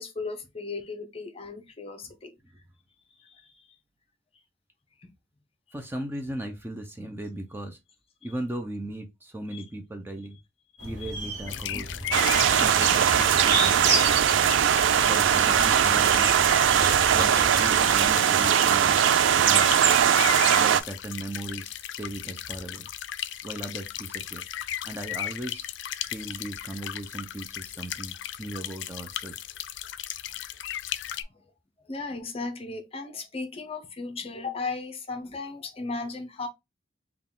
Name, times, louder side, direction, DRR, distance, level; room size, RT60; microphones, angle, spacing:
voice 1, 0.0-2.3 3.2-3.7 5.0-5.1 9.5-9.6 10.8-11.2 11.7-11.8 12.3-13.0 19.5-19.8 31.3-31.4 31.8-36.5, left 3 dB, 30° left, 0.7 m, -36 dB
voice 2, 5.7-7.8 8.2-10.4 10.8-11.9 12.6-12.9 13.2-14.1 15.0-16.3 17.1-19.0 19.5-19.7 20.5-22.9 23.4-24.4 24.8-25.7 26.1-29.4, right 1 dB, 10° right, 0.4 m, -37 dB
sound 1, 10.8-18.1, right 3 dB, 60° right, 1.1 m, -32 dB
sound 2, 11.5-31.2, left 11 dB, 70° left, 0.4 m, -36 dB
sound 3, 12.1-20.8, right 9 dB, 80° right, 0.3 m, -20 dB
3.9 x 2.3 x 3.6 m
head